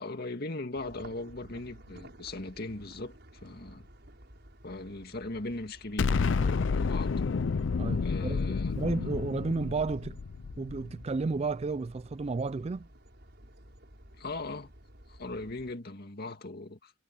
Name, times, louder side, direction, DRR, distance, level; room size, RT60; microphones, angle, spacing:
voice 1, 0.0-3.9 4.6-7.1 8.0-8.8 14.2-14.7 15.1-16.9, left 2 dB, 50° left, 2.2 m, -39 dB
cl yard ambience loco pass by, 0.7-15.7, right 1 dB, 60° right, 7.3 m, -54 dB
Explosion, 6.0-11.2, left 4 dB, 70° left, 0.5 m, -30 dB
voice 2, 7.8-10.2 10.6-12.9, right 4 dB, 35° right, 0.4 m, -32 dB
head